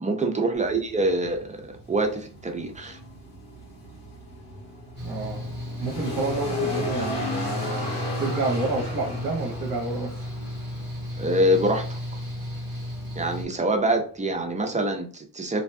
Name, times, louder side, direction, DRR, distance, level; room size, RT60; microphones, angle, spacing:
voice 1, 0.0-3.0 11.2-12.0 13.2-15.6, right 1 dB, 20° right, 3 dB, 0.4 m, -25 dB
sound 1, 0.6-15.0, left 2 dB, 85° left, 1.4 m, -36 dB
Mechanical fan, 5.0-13.5, equal, 25° left, 1.2 m, -34 dB
voice 2, 5.0-5.5 5.8-10.3, right 3 dB, 50° right, 0 dB, 0.7 m, -30 dB
2.5 x 2.2 x 2.5 m, 0.42 s
wide cardioid pair, 120°, 41 cm